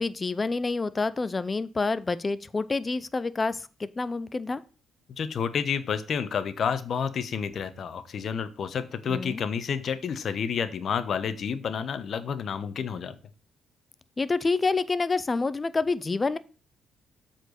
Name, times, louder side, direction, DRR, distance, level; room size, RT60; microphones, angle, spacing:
voice 1, 0.0-4.6 9.1-9.4 14.2-16.4, left 3 dB, 25° left, 15 dB, 0.6 m, -28 dB
voice 2, 5.2-13.1, left 7 dB, 55° left, 12 dB, 1.0 m, -30 dB
7.8 x 4.5 x 6.5 m, 0.34 s
cardioid pair, 90°, 0 cm